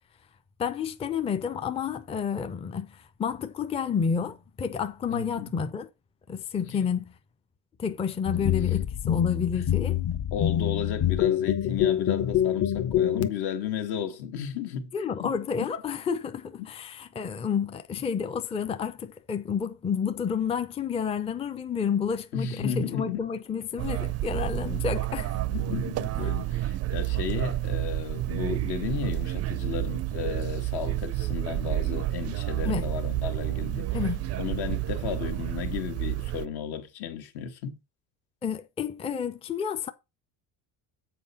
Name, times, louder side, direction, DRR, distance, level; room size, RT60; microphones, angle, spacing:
voice 1, 0.6-5.9 6.3-7.1 7.8-10.0 14.9-25.4 32.6-32.9 33.9-34.3 38.4-39.9, left 7 dB, 15° left, 0.5 m, -30 dB
voice 2, 5.1-5.5 6.6-6.9 8.3-8.5 9.5-9.7 10.3-15.3 15.6-15.7 16.6-16.7 22.3-23.2 25.5-34.0 34.4-37.8, left 8 dB, 70° left, 1.6 m, -34 dB
sound 1, 8.2-13.3, left 11 dB, 40° left, 0.8 m, -25 dB
sound 2, 23.8-36.5, right 16 dB, 40° right, 0.4 m, -30 dB
7.7 x 4.5 x 5.4 m
cardioid pair, 130°, 39 cm